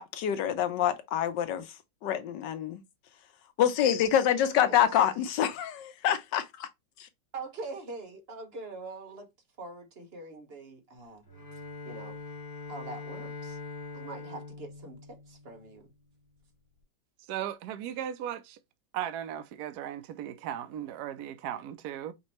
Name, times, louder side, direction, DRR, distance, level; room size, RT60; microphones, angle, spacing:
voice 1, 0.0-1.6 2.0-2.8 3.6-6.7, left 10 dB, 80° left, 1.4 m, -26 dB
voice 2, 4.4-4.9 7.3-9.3 9.6-11.2 11.8-12.2 12.7-13.6 13.9-15.9, right 3 dB, 40° right, 1.3 m, -43 dB
Bowed string instrument, 11.3-15.9, left 3 dB, 55° left, 2.2 m, -43 dB
voice 3, 17.3-18.6 18.9-22.1, right 10 dB, 70° right, 1.1 m, -37 dB
5.3 x 2.9 x 3.1 m
omnidirectional pair, 1.9 m